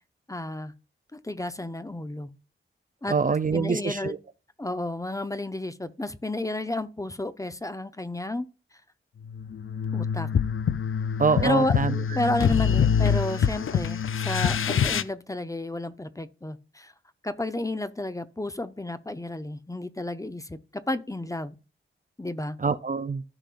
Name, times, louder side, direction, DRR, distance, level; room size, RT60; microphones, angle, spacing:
voice 1, 0.3-0.7 1.1-2.3 3.0-3.2 3.5-4.1 4.6-8.5 9.9-10.3 11.4-11.7 12.1-16.9 17.2-21.6 22.2-22.6, left 2 dB, 15° left, 0.7 m, -31 dB
voice 2, 3.1-4.2 11.2-11.9 22.6-23.2, right 5 dB, 40° right, 0.5 m, -25 dB
sound 1, 9.2-15.0, left 7 dB, 75° left, 0.5 m, -25 dB
14.0 x 5.4 x 2.5 m
wide cardioid pair, 100°, 21 cm